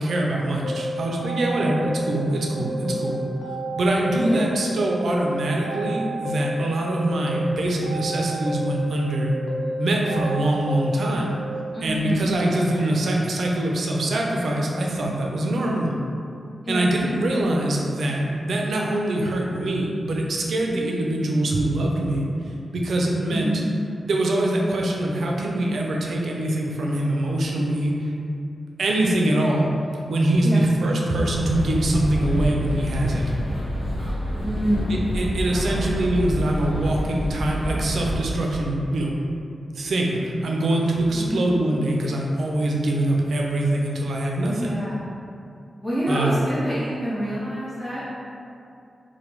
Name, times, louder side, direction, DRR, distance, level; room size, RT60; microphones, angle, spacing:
voice 1, 0.0-3.2 3.7-9.3 9.8-11.4 11.8-16.0 16.7-22.3 22.7-23.6 24.1-27.9 28.8-29.7 30.1-33.2 34.9-39.1 39.7-44.6 46.1-46.4, right 1 dB, 75° right, -1 dB, 0.4 m, -23 dB
sound 1, 0.6-2.5 2.8-4.7 5.1-6.9 7.3-9.1 9.5-11.4, right 1 dB, 80° left, 0.4 m, -31 dB
voice 2, 11.7-12.9 16.6-17.0 23.3-23.7 30.4-30.6 34.4-35.9 41.1-41.5 44.4-45.1 45.8-48.1, equal, 10° left, -11 dB, 0.5 m, -27 dB
sound 2, 31.3-38.2, equal, 40° left, 0.7 m, -27 dB
3.1 x 2.1 x 3.0 m, 2.5 s
wide cardioid pair, 140°, 0 cm